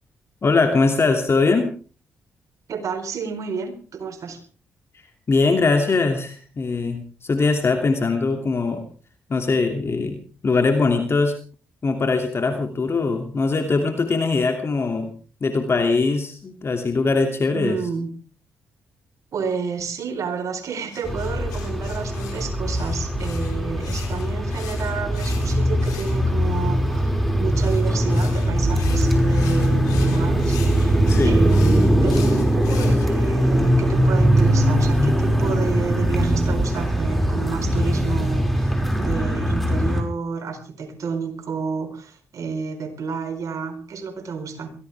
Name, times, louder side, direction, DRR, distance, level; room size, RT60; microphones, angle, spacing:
voice 1, 0.4-1.7 5.3-8.8 9.3-10.2 10.4-11.3 11.8-15.1 15.4-17.8 31.1-31.4, left 3 dB, 45° left, 5 dB, 2.7 m, -21 dB
voice 2, 2.7-4.4 17.5-18.1 19.3-27.1 27.4-44.7, right 5 dB, 60° right, 5 dB, 4.5 m, -30 dB
sound 1, 20.9-26.7 27.5-33.1, left 9 dB, 80° left, 4.2 m, -42 dB
sound 2, 21.0-40.0, equal, ahead, 5.6 m, -20 dB
23.0 x 16.0 x 3.5 m, 0.39 s
hypercardioid pair, 45°, 6 cm